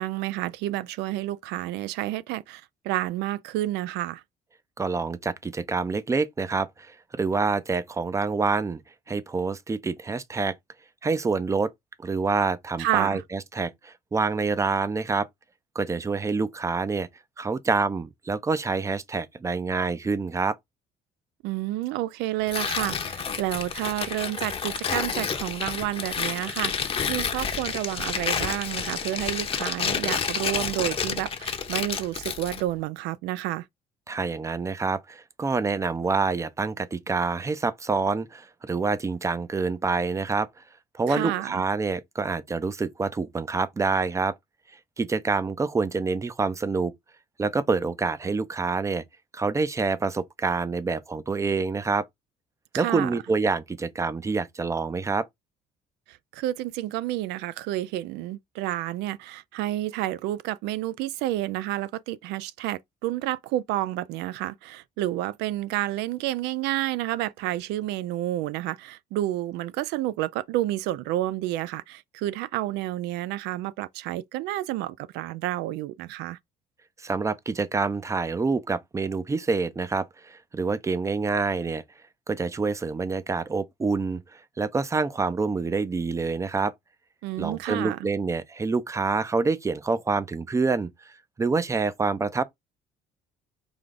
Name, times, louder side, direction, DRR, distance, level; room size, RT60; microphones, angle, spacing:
voice 1, 0.0-4.2 12.8-13.2 21.4-33.7 41.1-41.6 52.7-53.1 56.1-76.4 87.2-88.0, right 15 dB, 90° right, 0.4 m, -30 dB
voice 2, 4.8-8.8 9.1-10.5 11.0-11.7 12.0-15.3 15.8-17.1 17.4-20.6 34.1-40.5 40.9-44.3 45.0-46.9 47.4-49.0 49.3-52.1 52.8-55.3 77.0-81.8 82.3-86.7 87.4-92.4, right 4 dB, 20° right, 0.5 m, -27 dB
Tearing, 22.5-32.7, left 6 dB, 35° left, 0.8 m, -30 dB
5.1 x 2.3 x 3.8 m
cardioid pair, 110°, 17 cm